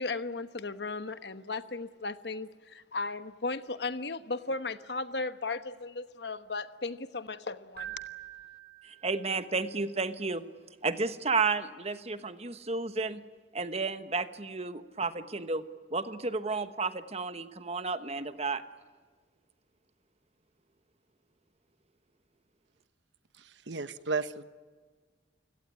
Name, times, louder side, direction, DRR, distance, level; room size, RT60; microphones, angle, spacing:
voice 1, 0.0-7.9, left 3 dB, 65° left, 12 dB, 1.2 m, -36 dB
Keyboard (musical), 7.8-9.6, right 12 dB, 60° right, 5.3 m, -45 dB
voice 2, 8.8-10.4 10.8-13.2 13.5-15.6 15.9-18.6, right 4 dB, 35° right, 11 dB, 1.2 m, -32 dB
voice 3, 23.4-24.4, right 3 dB, 85° right, 13 dB, 1.1 m, -34 dB
29.0 x 17.5 x 9.8 m, 1.5 s
head